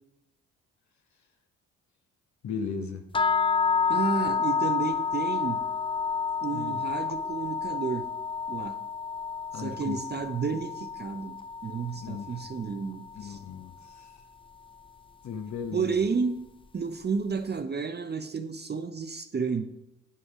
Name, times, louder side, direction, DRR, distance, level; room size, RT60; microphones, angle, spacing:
voice 1, 2.4-3.0 6.5-6.8 9.5-10.0 12.0-12.4 13.1-14.1 15.2-16.0, left 6 dB, 50° left, 5 dB, 1.0 m, -36 dB
sound 1, 3.1-13.2, left 6 dB, 15° left, 0.4 m, -30 dB
voice 2, 3.9-5.6 6.4-8.1 8.5-8.8 9.5-11.4 11.6-13.4 15.7-16.4 16.7-19.7, right 5 dB, 25° right, 9 dB, 0.7 m, -31 dB
9.6 x 5.6 x 4.7 m, 0.89 s
hypercardioid pair, 45°, 37 cm